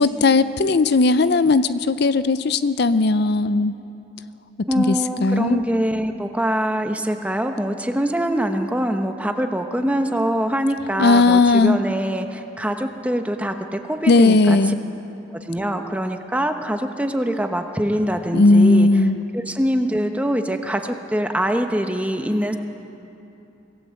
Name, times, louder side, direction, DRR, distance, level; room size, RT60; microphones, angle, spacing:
voice 1, 0.0-3.8 4.8-5.0 5.2-5.6 11.0-11.8 14.1-14.8 18.3-19.2, left 3 dB, 55° left, 13 dB, 0.5 m, -16 dB
voice 2, 4.7-14.7 15.3-18.9 19.3-22.6, equal, 5° right, 5 dB, 1.0 m, -24 dB
25.5 x 16.5 x 7.7 m, 2.9 s
head